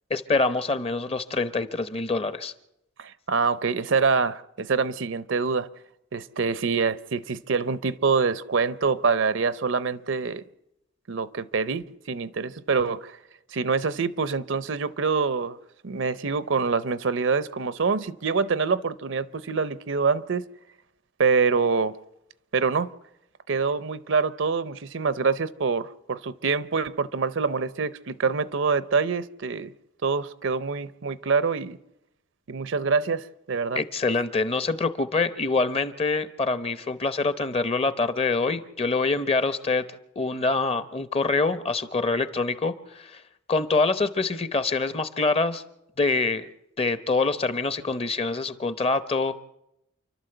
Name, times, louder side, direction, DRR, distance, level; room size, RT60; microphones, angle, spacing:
voice 1, 0.1-2.5 33.7-39.9 40.2-43.2 43.5-45.6 46.0-46.5 46.8-49.4, left 3 dB, 30° left, 0.8 m, -25 dB
voice 2, 3.0-5.7 6.1-10.4 11.1-13.2 13.5-15.6 15.8-20.4 21.2-22.0 22.5-22.9 23.5-29.7 30.0-31.8 32.5-33.8, right 5 dB, 60° right, 0.6 m, -25 dB
29.0 x 12.0 x 7.9 m
head